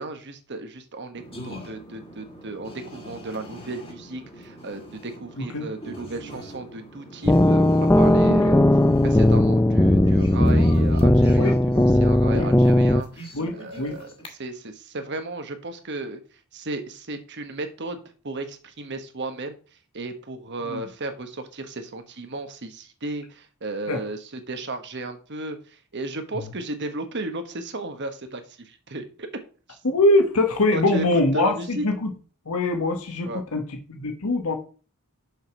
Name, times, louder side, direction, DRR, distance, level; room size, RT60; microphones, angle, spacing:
voice 1, 0.0-8.7 9.0-16.2 16.5-18.0 18.2-19.6 19.9-29.3 29.7-29.8 30.7-31.8 33.2-33.4, right 2 dB, 50° right, 8 dB, 1.2 m, -34 dB
sound 1, 1.1-14.3, equal, 25° left, 1.7 m, -43 dB
sound 2, 7.2-13.0, left 1 dB, 10° left, 0.4 m, -17 dB
sound 3, 8.0-12.0 12.3-12.4, right 3 dB, 70° right, 0.6 m, -38 dB
voice 2, 13.3-14.0 20.7-20.8 23.9-24.0 29.8-32.1 32.5-33.6 33.9-34.6, left 2 dB, 75° left, 4 dB, 1.2 m, -22 dB
6.5 x 5.0 x 6.1 m, 0.38 s
head